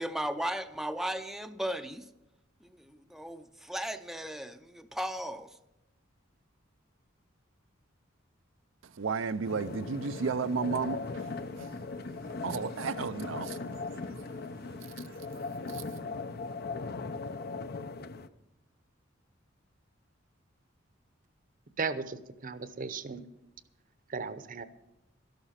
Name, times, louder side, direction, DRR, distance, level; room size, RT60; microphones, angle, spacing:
voice 1, 0.0-2.1 2.6-5.6, right 1 dB, ahead, 0.5 m, -36 dB
voice 2, 9.0-11.1 11.6-11.7 12.4-13.6 15.7-15.8, right 5 dB, 75° right, 0.5 m, -32 dB
sound 1, 9.4-18.3, left 3 dB, 55° left, 0.6 m, -39 dB
voice 3, 21.8-23.3 24.1-24.7, right 4 dB, 45° right, 0.8 m, -36 dB
13.0 x 11.5 x 5.7 m
head